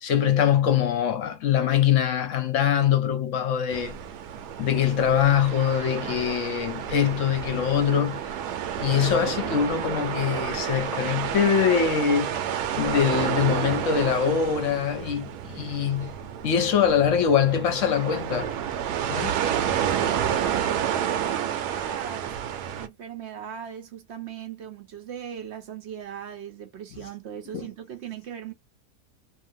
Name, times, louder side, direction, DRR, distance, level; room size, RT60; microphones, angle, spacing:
voice 1, 0.0-3.9 4.6-8.3 8.8-12.4 12.8-16.1 16.4-18.5 19.1-19.4 27.5-27.7, left 8 dB, 65° left, 0.8 m, -23 dB
sound 1, 3.7-22.9, right 9 dB, 80° right, 1.1 m, -30 dB
voice 2, 19.9-22.3 22.7-28.5, right 9 dB, 60° right, 0.7 m, -39 dB
2.7 x 2.5 x 2.6 m
omnidirectional pair, 1.7 m